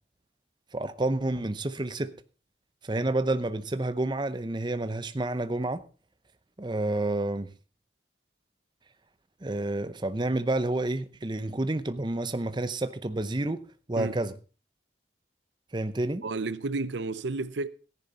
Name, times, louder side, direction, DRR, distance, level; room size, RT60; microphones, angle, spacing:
voice 1, 0.7-2.1 2.8-5.8 6.6-7.5 9.4-13.6 13.9-14.3 15.7-16.2, right 2 dB, 25° right, 0.7 m, -29 dB
voice 2, 16.2-17.7, right 3 dB, 70° right, 0.6 m, -31 dB
14.5 x 10.5 x 4.1 m
head